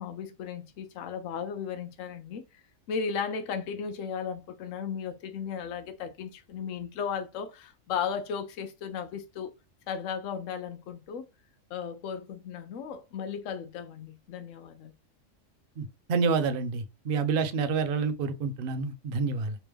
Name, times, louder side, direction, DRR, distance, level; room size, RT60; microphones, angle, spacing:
voice 1, 0.0-2.4 2.9-9.5 9.9-11.3 11.7-14.9, left 6 dB, 75° left, 1.0 m, -35 dB
voice 2, 15.8-19.6, right 5 dB, 55° right, 0.7 m, -28 dB
3.3 x 3.0 x 3.3 m
omnidirectional pair, 1.4 m